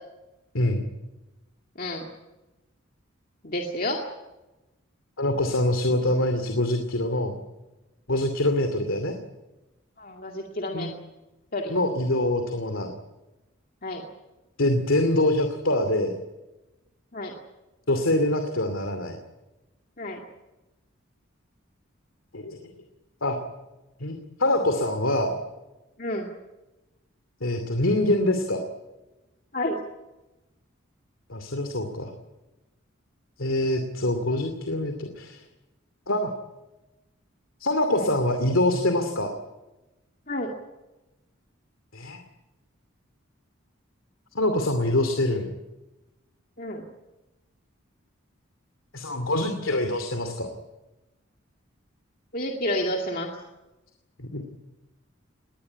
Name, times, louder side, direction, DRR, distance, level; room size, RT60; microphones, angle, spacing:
voice 1, 0.5-0.9 5.2-7.4 8.1-9.1 10.7-10.9 11.7-12.9 14.6-16.2 17.9-19.2 22.3-22.6 23.2-23.4 24.0-25.3 27.4-28.6 31.3-32.1 33.4-35.4 36.1-36.3 37.6-39.3 41.9-42.2 44.3-45.5 48.9-50.5 54.2-54.4, left 1 dB, 75° left, 6 dB, 2.6 m, -25 dB
voice 2, 1.8-2.1 3.4-4.0 10.0-10.9 11.5-11.7 13.8-14.0 17.1-17.3 20.0-20.2 26.0-26.3 29.5-29.8 37.9-38.1 40.3-40.5 46.6-46.9 52.3-53.3, left 1 dB, 45° left, 1 dB, 2.2 m, -30 dB
20.5 x 19.0 x 9.9 m, 1.0 s
head